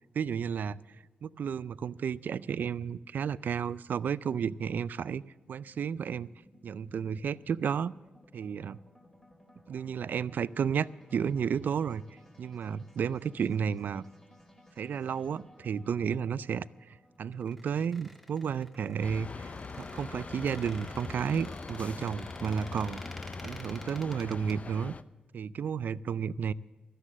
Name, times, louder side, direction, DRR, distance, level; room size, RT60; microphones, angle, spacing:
voice 1, 0.1-0.8 1.2-5.2 5.5-6.3 6.6-7.9 8.3-8.8 9.7-12.0 12.4-14.0 14.8-16.7 17.2-23.0 23.4-24.9 25.3-26.5, right 7 dB, 65° right, 19 dB, 0.4 m, -32 dB
sound 1, 5.3-20.1, left 1 dB, 20° left, 2.8 m, -60 dB
Squeak, 17.3-24.5, equal, 5° left, 1.7 m, -50 dB
sound 2, 19.0-25.0, left 4 dB, 45° left, 0.6 m, -42 dB
13.0 x 10.0 x 7.3 m, 1.3 s
cardioid pair, 65°, 3 cm